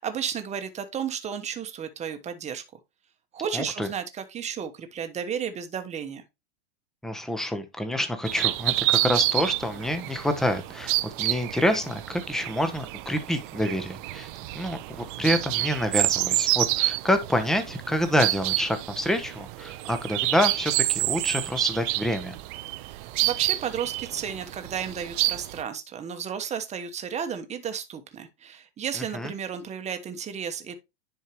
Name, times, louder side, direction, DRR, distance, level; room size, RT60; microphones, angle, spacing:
voice 1, 0.0-2.6 3.3-6.2 22.8-30.7, right 8 dB, 20° right, 1.1 m, -33 dB
voice 2, 3.5-3.9 7.0-14.3 14.5-22.3 29.1-29.3, left 1 dB, ahead, 0.9 m, -27 dB
sound 1, 8.2-25.6, right 18 dB, 50° right, 0.6 m, -28 dB
10.0 x 4.6 x 3.0 m
supercardioid pair, 135°, 34 cm